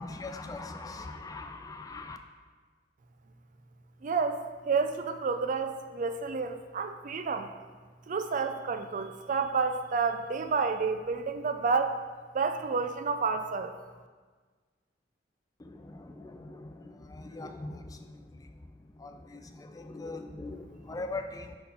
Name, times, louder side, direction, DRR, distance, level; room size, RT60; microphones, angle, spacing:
voice 1, 0.0-2.2 15.7-16.7 17.1-17.8 19.0-21.5, left 3 dB, 20° left, 5 dB, 0.4 m, -41 dB
voice 2, 4.0-7.5 8.1-12.0 12.3-13.7, right 4 dB, 45° right, 8 dB, 0.4 m, -30 dB
5.5 x 4.4 x 5.5 m, 1.4 s
head